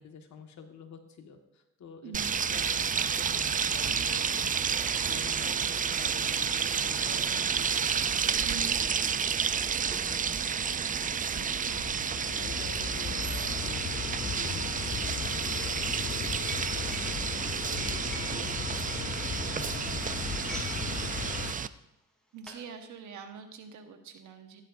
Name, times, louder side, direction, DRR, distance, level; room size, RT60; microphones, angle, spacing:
voice 1, 0.0-21.4, left 6 dB, 65° left, 4 dB, 1.7 m, -49 dB
voice 2, 2.0-2.3 8.4-8.8 12.8-12.9 22.3-24.6, right 7 dB, 75° right, 6 dB, 1.4 m, -43 dB
sound 1, 2.1-21.7, right 7 dB, 25° right, 0.4 m, -30 dB
sound 2, 11.6-21.5, left 8 dB, 35° left, 0.5 m, -37 dB
sound 3, 16.5-20.8 21.1-21.4 22.0-22.7, right 1 dB, 5° left, 3.5 m, -48 dB
15.0 x 11.5 x 2.7 m, 0.94 s
cardioid pair, 90°, 30 cm